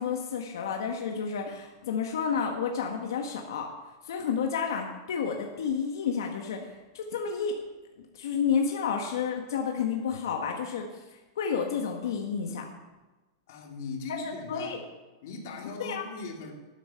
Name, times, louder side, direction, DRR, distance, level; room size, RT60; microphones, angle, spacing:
voice 1, 0.0-3.7 4.0-7.5 8.1-12.7 14.2-14.8 15.8-16.1, left 6 dB, 85° left, 2 dB, 1.6 m, -31 dB
voice 2, 13.5-14.8 15.2-16.5, left 4 dB, 50° left, 1 dB, 2.7 m, -39 dB
12.0 x 9.1 x 6.9 m, 1.2 s
supercardioid pair, 175°, 2 cm